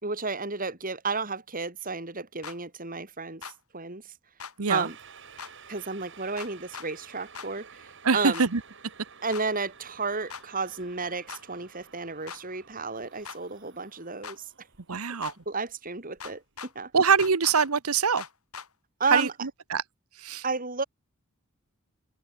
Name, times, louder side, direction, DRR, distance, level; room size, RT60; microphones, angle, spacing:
voice 1, 0.0-3.4 3.7-4.0 4.7-5.0 5.7-8.4 9.2-14.4 15.5-16.4 16.7-16.9 19.0-19.3 20.4-20.8, right 4 dB, 40° right, 4.1 m, -32 dB
sound 1, 2.4-2.6 3.4-3.6 4.4-4.5 5.4-5.5 6.4-6.9 7.3-7.5 8.3-8.5 9.3-9.5 10.3-10.4 11.3-11.4 12.3-12.4 13.2-13.4 14.2-14.4 15.2-15.4 16.2-16.7 17.2-17.7 18.2-18.7 19.1-19.3, left 6 dB, 90° left, 7.1 m, -40 dB
sound 2, 4.7-16.8 17.1-17.2, right 6 dB, 60° right, 6.0 m, -52 dB
voice 2, 8.0-8.6 14.9-15.3 16.9-18.2 19.1-19.3 19.7-19.8 20.2-20.4, right 5 dB, 85° right, 1.1 m, -23 dB
open air
head